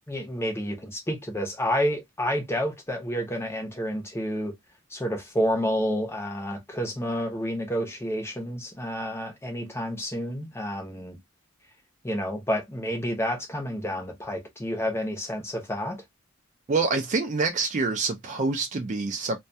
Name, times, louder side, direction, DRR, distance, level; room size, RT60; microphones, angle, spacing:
voice 1, 0.1-4.5 4.9-11.2 12.0-16.0, equal, 10° left, 0.6 m, -29 dB
voice 2, 16.7-19.4, right 3 dB, 35° right, 0.3 m, -26 dB
2.2 x 2.2 x 2.6 m
head